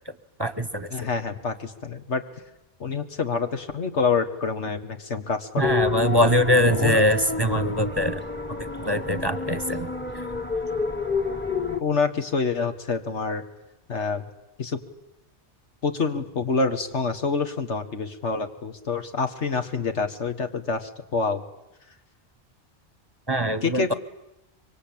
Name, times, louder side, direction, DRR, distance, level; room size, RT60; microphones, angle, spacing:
voice 1, 0.4-0.9 5.6-8.2 8.8-9.9 23.3-23.9, equal, 25° right, 13 dB, 0.9 m, -22 dB
voice 2, 0.9-2.2 2.8-5.7 6.7-7.0 11.8-13.4 13.9-14.2 14.6-14.8 15.8-21.4 23.6-23.9, left 4 dB, 90° left, 7 dB, 2.0 m, -27 dB
sound 1, 5.6-11.8, left 5 dB, 10° left, 1.1 m, -29 dB
24.5 x 24.0 x 8.8 m, 0.93 s
omnidirectional pair, 1.1 m